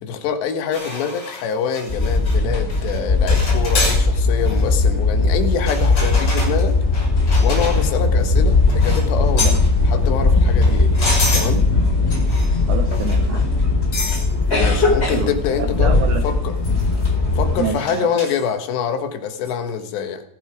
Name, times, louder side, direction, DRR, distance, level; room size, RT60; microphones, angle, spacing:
voice 1, 0.0-6.8 7.4-9.6 9.8-10.9 11.3-11.6 14.5-15.9 16.2-16.5 17.4-20.2, left 7 dB, 80° left, 7 dB, 3.7 m, -25 dB
sound 1, 0.7-2.4 2.7-3.0 3.3-4.0 4.4-4.6 5.6-8.0 8.7-9.1 9.4-9.7 10.5-11.5 12.1-12.6 12.9-13.2 13.9-14.2 14.7-14.8 15.2-15.3 15.6-15.7 16.6-17.0 17.9-18.5 19.4-19.6, left 2 dB, 30° left, 7.2 m, -28 dB
sound 2, 1.9-17.7, left 3 dB, 15° left, 3.5 m, -18 dB
voice 2, 12.7-13.5 15.1-15.3 15.6-16.4 17.5-18.1, right 7 dB, 70° right, 7 dB, 1.9 m, -27 dB
17.5 x 15.0 x 5.0 m, 0.73 s
omnidirectional pair, 5.0 m